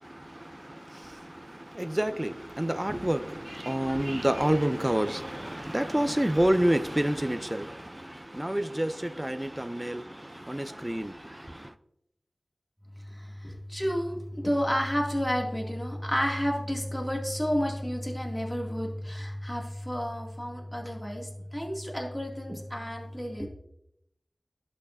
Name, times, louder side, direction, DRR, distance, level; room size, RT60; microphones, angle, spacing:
voice 1, 0.0-11.7, right 1 dB, 15° right, 0.4 m, -29 dB
voice 2, 13.4-14.2 14.4-23.5, equal, 10° left, 2.3 m, -31 dB
11.5 x 6.2 x 2.6 m
wide cardioid pair, 45°, 0 cm